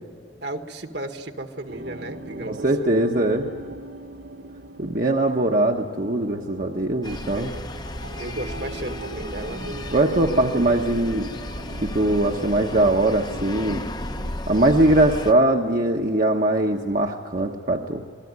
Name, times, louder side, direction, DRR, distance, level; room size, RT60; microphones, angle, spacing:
voice 1, 0.4-2.9 7.3-7.7 8.2-9.7 10.1-10.7, right 2 dB, 65° right, 6 dB, 1.7 m, -35 dB
sound 1, 1.7-14.3, right 1 dB, 80° right, 2.6 m, -40 dB
voice 2, 2.5-3.5 4.8-7.5 9.9-11.3 11.8-13.8 14.5-18.0, right 1 dB, 45° right, 1 dB, 1.1 m, -21 dB
sound 2, 7.0-15.3, left 1 dB, 20° left, 0.8 m, -34 dB
27.0 x 20.0 x 9.6 m, 2.3 s
head